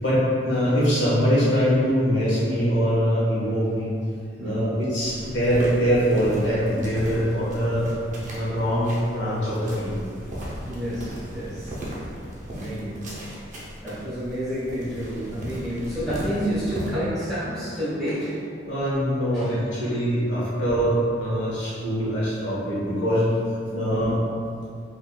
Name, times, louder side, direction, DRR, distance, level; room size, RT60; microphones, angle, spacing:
voice 1, 0.0-3.9 4.4-7.9 8.3-10.0 18.7-23.3 23.7-24.2, equal, 80° left, -9 dB, 1.2 m, -23 dB
sound 1, 5.0-16.9, equal, 40° right, 0.6 m, -37 dB
voice 2, 10.6-11.7 12.5-13.0 13.8-18.4 19.3-19.5 19.9-20.1 23.9-24.1, equal, ahead, -14 dB, 1.4 m, -29 dB
3.7 x 2.9 x 2.3 m, 2.3 s
head